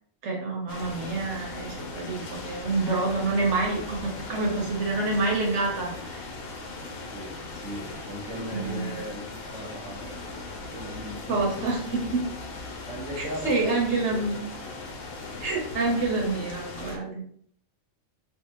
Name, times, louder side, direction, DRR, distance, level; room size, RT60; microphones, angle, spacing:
voice 1, 0.2-6.2 8.5-8.9 11.3-12.2 13.2-14.3 15.4-17.2, right 3 dB, 65° right, -1 dB, 0.9 m, -27 dB
sound 1, 0.7-17.0, left 3 dB, 85° left, 1.0 m, -39 dB
voice 2, 1.9-2.4 7.1-10.3 10.7-12.3 12.8-14.4, equal, 5° left, -8 dB, 0.9 m, -39 dB
2.6 x 2.0 x 2.8 m, 0.62 s
omnidirectional pair, 1.4 m